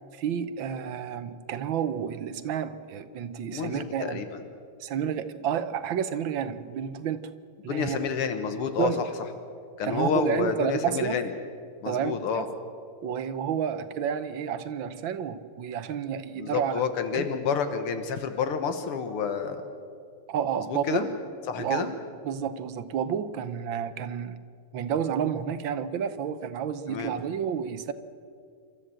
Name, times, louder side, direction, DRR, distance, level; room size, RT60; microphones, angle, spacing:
voice 1, 0.2-4.2 4.8-7.2 7.6-8.0 8.8-9.0 9.8-11.2 11.9-12.4 13.0-16.8 17.1-17.3 20.3-21.1 21.6-21.9 22.2-24.4 24.7-27.9, right 8 dB, 65° right, 12 dB, 1.6 m, -30 dB
voice 2, 3.5-4.4 7.7-9.1 9.8-11.3 11.8-12.5 16.3-19.6 20.6-21.1 21.5-21.9 26.9-27.2, left 6 dB, 80° left, 8 dB, 2.2 m, -29 dB
28.0 x 13.0 x 7.7 m, 2.3 s
omnidirectional pair, 2.4 m